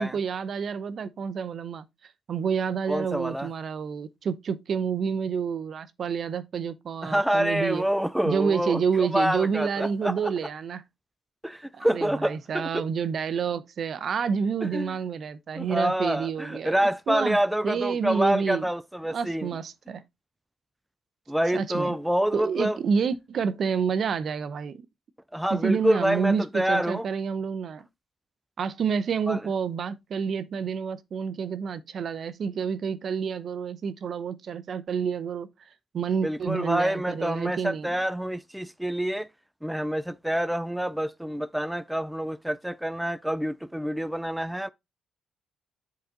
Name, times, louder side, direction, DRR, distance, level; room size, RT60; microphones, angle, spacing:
voice 1, 0.0-1.9 2.3-7.8 8.2-10.8 11.7-16.8 17.1-18.6 19.1-20.0 21.5-21.9 22.3-24.9 25.5-27.9 28.6-35.5 35.9-37.9, right 6 dB, 55° right, 0.7 m, -29 dB
voice 2, 2.9-3.5 7.0-10.3 11.4-12.8 14.7-15.0 15.5-19.6 21.3-22.8 25.3-27.0 29.3-29.4 36.2-39.3 39.6-44.7, equal, 5° right, 0.4 m, -27 dB
7.8 x 4.1 x 3.9 m
cardioid pair, 90°, 0 cm